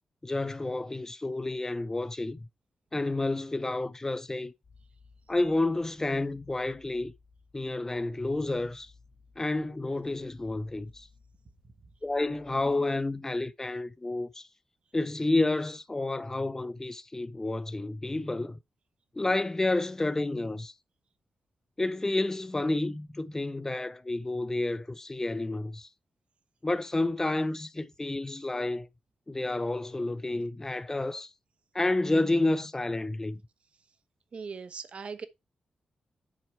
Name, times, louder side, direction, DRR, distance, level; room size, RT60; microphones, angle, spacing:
voice 1, 0.2-2.4 2.9-4.5 5.3-7.1 7.5-8.9 9.4-11.1 12.0-14.5 14.9-18.6 19.1-20.7 21.8-25.9 26.6-28.9 29.3-31.3 31.7-33.4, left 2 dB, 20° left, 0.7 m, -30 dB
sound 1, 4.6-12.8, left 4 dB, 60° left, 1.9 m, -60 dB
voice 2, 34.3-35.3, right 5 dB, 60° right, 1.1 m, -39 dB
7.5 x 4.6 x 4.6 m
cardioid pair, 80°, 2 cm